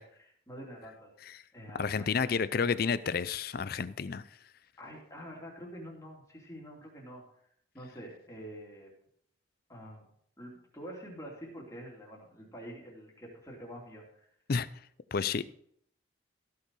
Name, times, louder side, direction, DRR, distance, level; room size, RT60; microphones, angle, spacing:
voice 1, 0.0-1.1 1.5-3.0 4.8-7.2 7.7-8.9 9.7-10.1 10.4-14.3, equal, 15° left, 2.9 m, -47 dB
voice 2, 1.8-4.2 14.5-14.7 15.1-15.6, left 5 dB, 50° left, 0.5 m, -30 dB
14.5 x 6.8 x 4.8 m
head